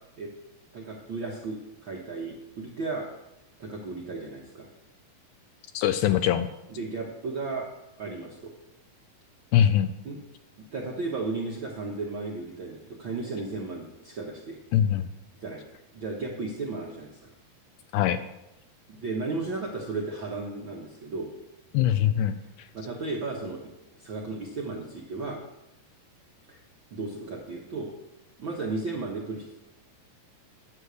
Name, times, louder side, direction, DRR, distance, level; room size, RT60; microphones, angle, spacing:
voice 1, 0.7-3.1 3.6-4.7 6.7-7.7 8.0-8.5 10.0-10.2 10.7-14.6 15.4-15.6 15.9-17.3 18.9-21.3 22.7-23.6 24.0-25.4 26.5-26.6 26.9-27.9 28.4-29.5, right 3 dB, 65° right, -2 dB, 1.2 m, -34 dB
voice 2, 5.7-6.5 9.5-9.9 14.7-15.1 17.9-18.2 21.7-22.7, left 10 dB, 80° left, 10 dB, 1.9 m, -23 dB
9.8 x 6.4 x 8.2 m, 0.93 s
omnidirectional pair, 4.0 m